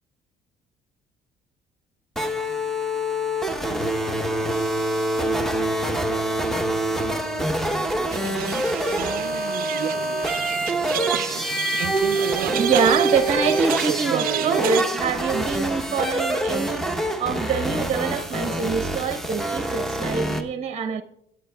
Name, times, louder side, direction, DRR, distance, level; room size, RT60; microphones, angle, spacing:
sound 1, 2.2-20.4, right 1 dB, ahead, 0.9 m, -25 dB
sound 2, 8.1-14.8, right 13 dB, 60° right, 0.4 m, -29 dB
voice 1, 11.8-21.0, right 6 dB, 40° right, 0.8 m, -25 dB
22.5 x 8.6 x 2.2 m
cardioid pair, 110°, 17 cm